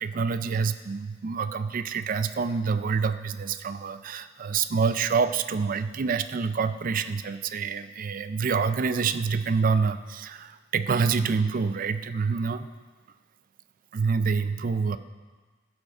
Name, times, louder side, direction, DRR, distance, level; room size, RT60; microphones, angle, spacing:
voice 1, 0.0-12.7 13.9-15.0, right 5 dB, 45° right, 12 dB, 0.4 m, -27 dB
14.5 x 5.3 x 4.8 m, 1.4 s
head